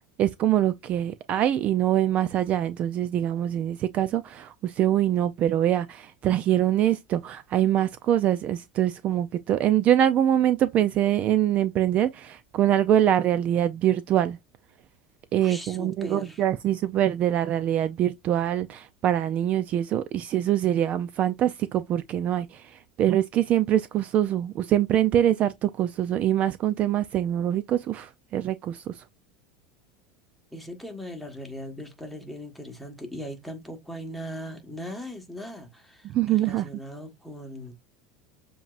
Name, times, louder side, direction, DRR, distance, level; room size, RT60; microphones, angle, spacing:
voice 1, 0.2-14.4 15.3-29.0 36.1-36.7, right 11 dB, 40° right, 0.4 m, -24 dB
voice 2, 15.4-16.4 30.5-37.7, equal, ahead, 1.3 m, -39 dB
7.1 x 2.9 x 2.4 m
supercardioid pair, 130°, 4 cm